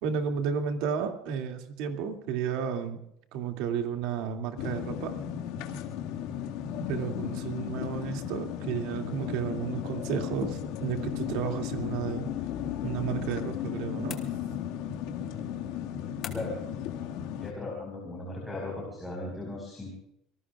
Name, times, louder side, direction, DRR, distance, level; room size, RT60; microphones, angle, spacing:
voice 1, 0.0-3.0 3.3-5.1 6.9-12.2 12.8-14.2, right 7 dB, 65° right, 5 dB, 2.4 m, -32 dB
sound 1, 4.6-17.5, left 9 dB, 70° left, 1.9 m, -35 dB
sound 2, 14.1-14.8 16.2-16.7, left 8 dB, 30° left, 2.2 m, -43 dB
voice 2, 17.4-19.9, left 2 dB, 5° left, -2 dB, 4.6 m, -37 dB
26.5 x 19.5 x 2.4 m, 0.75 s
cardioid pair, 175°, 0 cm